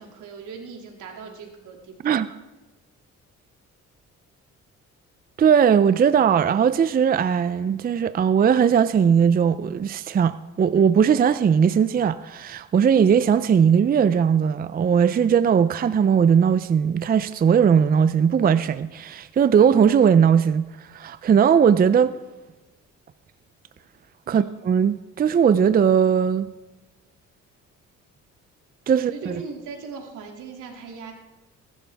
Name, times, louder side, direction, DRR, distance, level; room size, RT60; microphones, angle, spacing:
voice 1, 0.0-1.9 22.0-22.1 24.3-24.5 28.9-31.1, right 5 dB, 80° right, 2.6 m, -39 dB
voice 2, 5.4-20.7 20.9-22.1 24.3-26.5 28.9-29.4, right 7 dB, 30° right, 0.5 m, -19 dB
19.5 x 11.5 x 3.5 m
cardioid pair, 90°, 30 cm